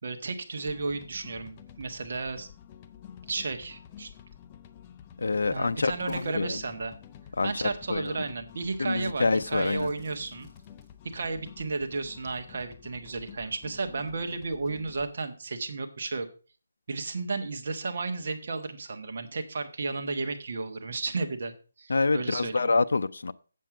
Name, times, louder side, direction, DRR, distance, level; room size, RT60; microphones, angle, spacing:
voice 1, 0.0-2.5 3.3-4.1 5.5-7.0 7.4-10.5 11.1-16.3 16.9-21.5 21.8-22.7, right 3 dB, 50° right, 1.3 m, -33 dB
sound 1, 0.6-15.1, left 9 dB, 20° left, 0.5 m, -50 dB
voice 2, 5.2-6.6 7.4-8.2 8.8-9.9 21.9-23.3, left 3 dB, 80° left, 0.5 m, -27 dB
Crackle / Fireworks, 6.1-7.2 8.0-8.3 9.3-11.3, equal, ahead, 1.8 m, -58 dB
7.6 x 7.6 x 4.8 m
hypercardioid pair, 175°, 0 cm